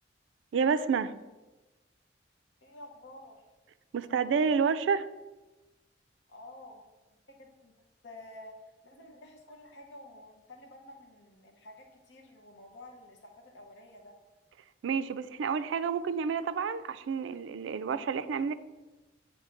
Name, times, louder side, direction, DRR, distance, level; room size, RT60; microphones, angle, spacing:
voice 1, 0.5-1.1 3.9-5.1 14.8-18.5, right 6 dB, 85° right, 0.3 m, -29 dB
voice 2, 2.6-3.4 6.3-7.7 8.0-14.1, left 1 dB, 65° left, 0.8 m, -51 dB
7.4 x 2.7 x 5.7 m
head